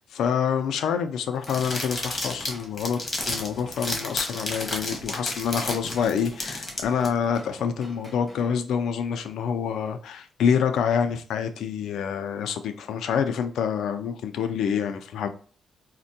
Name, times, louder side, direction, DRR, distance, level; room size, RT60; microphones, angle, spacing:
voice 1, 0.0-3.0 3.3-15.3, left 7 dB, 90° left, 0.4 m, -27 dB
Drum kit / Drum, 1.1-8.5, left 1 dB, 10° left, 1.7 m, -49 dB
sound 1, 1.4-7.1, left 2 dB, 30° left, 1.2 m, -32 dB
4.2 x 2.1 x 2.6 m
cardioid pair, 115°, 0 cm